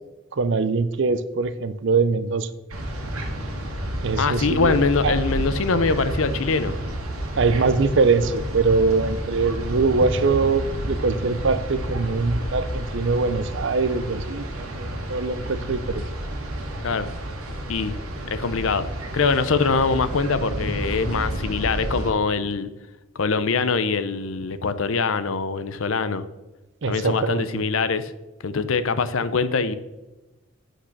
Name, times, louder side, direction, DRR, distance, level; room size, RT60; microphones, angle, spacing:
voice 1, 0.3-2.5 4.0-4.8 5.0-5.1 7.4-16.0 26.8-27.5, right 4 dB, 55° right, 13 dB, 0.5 m, -22 dB
sound 1, 2.7-22.1, right 1 dB, 85° right, 1.8 m, -30 dB
voice 2, 4.2-6.7 16.8-17.1 17.7-18.0 18.3-18.9 19.1-22.7 23.2-26.2 26.9-28.1 28.4-29.7, left 4 dB, 70° left, 13 dB, 0.6 m, -23 dB
8.2 x 6.3 x 5.9 m, 1.0 s
head